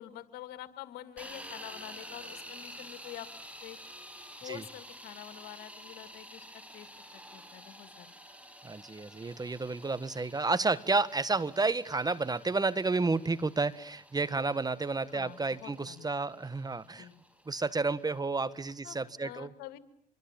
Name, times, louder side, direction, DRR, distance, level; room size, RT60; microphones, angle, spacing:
voice 1, 0.0-3.3 3.6-3.8 4.4-8.1 15.1-16.1 17.0-17.2 18.8-19.8, left 14 dB, 85° left, 12 dB, 2.2 m, -47 dB
sound 1, 1.2-19.1, equal, 10° right, 6.1 m, -50 dB
voice 2, 8.6-17.1 17.5-19.5, right 3 dB, 25° right, 16 dB, 1.6 m, -31 dB
26.0 x 23.0 x 9.0 m, 0.63 s
supercardioid pair, 65°, 16 cm